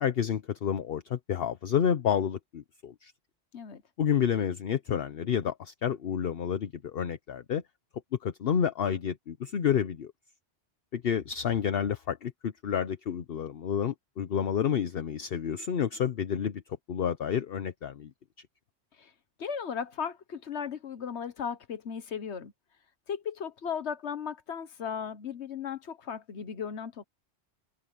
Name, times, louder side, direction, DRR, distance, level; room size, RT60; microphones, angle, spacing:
voice 1, 0.0-3.1 4.0-7.6 8.2-10.1 10.9-16.6 16.9-18.1, left 8 dB, 60° left, 1.0 m, -29 dB
voice 2, 19.4-22.5 23.1-27.1, left 7 dB, 75° left, 1.4 m, -36 dB
omnidirectional pair, 1.2 m